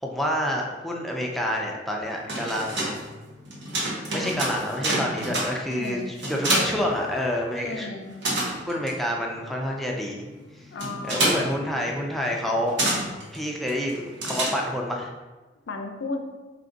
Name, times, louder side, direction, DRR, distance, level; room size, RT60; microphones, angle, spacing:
voice 1, 0.0-3.0 4.1-6.0 6.3-7.9 8.7-10.3 11.0-12.8 13.3-15.1, equal, ahead, -1 dB, 0.4 m, -28 dB
sound 1, 2.0-7.6 7.9-15.0, right 1 dB, 75° right, 0.9 m, -29 dB
voice 2, 5.7-6.1 7.6-8.1 10.7-12.0 15.7-16.2, left 3 dB, 80° left, 5 dB, 0.4 m, -35 dB
3.3 x 2.5 x 3.8 m, 1.2 s
head